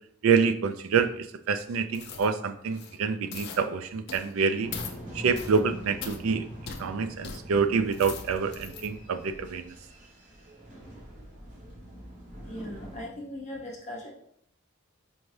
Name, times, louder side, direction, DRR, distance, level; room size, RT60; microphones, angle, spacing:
voice 1, 0.2-4.7 5.1-6.5 6.8-9.7, right 5 dB, 70° right, 10 dB, 0.4 m, -27 dB
sound 1, 1.9-2.3 2.7-3.0 3.3-3.6 4.1-4.3 4.7-5.0 5.3-5.6 6.0-6.2 6.7-6.8 7.2-7.4 7.8-8.9 9.3-9.5, left 6 dB, 50° left, 0.5 m, -40 dB
sound 2, 4.6-13.0, equal, 40° right, 1.2 m, -43 dB
voice 2, 11.9-14.1, left 1 dB, 35° left, -3 dB, 0.9 m, -40 dB
4.5 x 2.6 x 3.2 m, 0.69 s
head